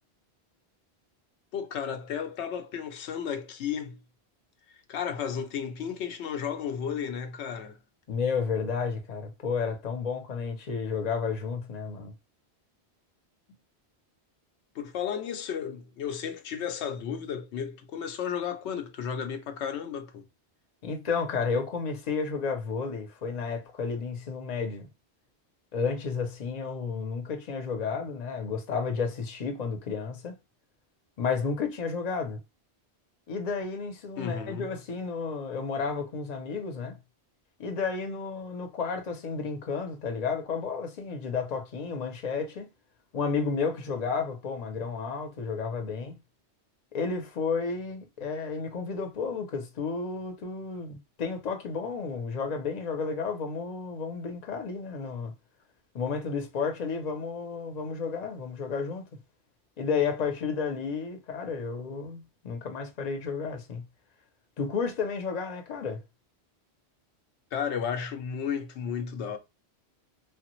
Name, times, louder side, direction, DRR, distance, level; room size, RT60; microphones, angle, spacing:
voice 1, 1.5-4.0 4.9-7.8 13.5-13.6 14.7-20.3 34.2-34.7 67.5-69.4, left 7 dB, 90° left, 0.9 m, -33 dB
voice 2, 8.1-12.1 20.8-24.9 25.7-30.4 31.2-32.4 33.3-37.0 37.6-42.7 43.1-46.2 46.9-55.3 55.9-59.1 59.8-63.8 64.6-66.0, left 5 dB, 45° left, 0.7 m, -32 dB
3.2 x 2.1 x 3.0 m
omnidirectional pair, 1.1 m